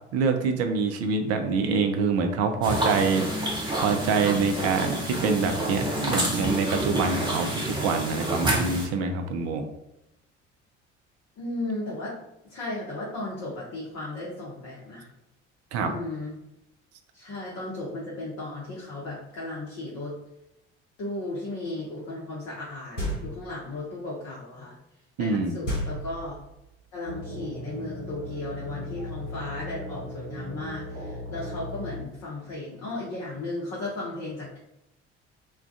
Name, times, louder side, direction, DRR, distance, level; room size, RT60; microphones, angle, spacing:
voice 1, 0.1-3.2 3.8-9.6 15.7-15.9 25.2-25.6, right 4 dB, 45° right, 6 dB, 0.4 m, -25 dB
sound 1, 2.6-8.9, right 1 dB, 15° right, 0.9 m, -28 dB
voice 2, 11.4-15.1 15.8-16.4 17.1-20.1 21.0-24.7 25.2-26.4 26.9-34.6, left 2 dB, 45° left, -6 dB, 0.7 m, -35 dB
sound 2, 23.0-23.6 25.7-26.7, equal, 85° left, 0.7 m, -32 dB
sound 3, 27.1-32.1, left 1 dB, 80° right, 0.7 m, -37 dB
2.3 x 2.2 x 2.5 m, 0.87 s
figure-of-eight pair, 55°, 35 cm